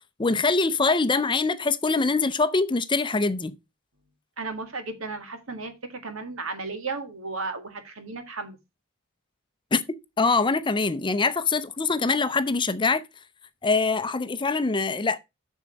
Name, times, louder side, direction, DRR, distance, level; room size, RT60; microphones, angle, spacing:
voice 1, 0.2-3.5 9.7-9.8 10.2-13.0 13.6-15.2, left 4 dB, 25° left, 0.6 m, -23 dB
voice 2, 4.4-8.6, right 3 dB, 75° right, 1.8 m, -34 dB
7.4 x 6.4 x 4.6 m
head